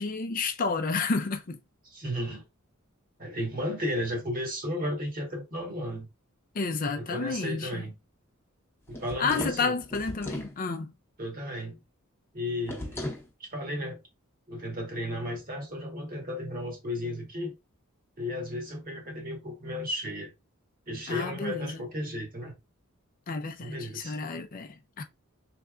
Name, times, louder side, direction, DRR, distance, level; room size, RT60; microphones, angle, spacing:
voice 1, 0.0-1.6 6.5-7.9 9.2-10.9 21.1-21.8 23.3-25.0, left 4 dB, 40° left, 0.5 m, -31 dB
voice 2, 1.9-2.4 3.2-6.1 6.9-7.9 8.9-9.7 11.2-11.8 12.3-13.1 13.4-14.0 14.5-17.5 18.2-20.3 20.9-22.6 23.6-24.2, left 1 dB, 45° right, 1.5 m, -34 dB
sound 1, 8.9-10.6 12.7-13.3, left 1 dB, 10° left, 0.8 m, -37 dB
4.0 x 3.3 x 2.4 m
head